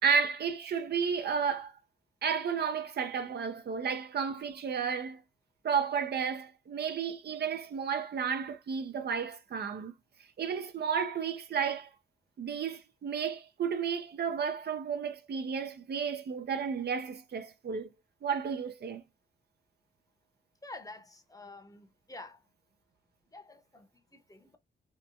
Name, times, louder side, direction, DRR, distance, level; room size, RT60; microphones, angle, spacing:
voice 1, 0.0-1.7 2.2-5.2 5.6-9.9 10.4-11.9 12.4-17.9 18.2-19.0, right 6 dB, 60° right, 0.5 m, -32 dB
voice 2, 20.6-22.4 23.3-24.6, left 2 dB, 20° left, 0.8 m, -49 dB
2.9 x 2.2 x 2.5 m
cardioid pair, 55°, 19 cm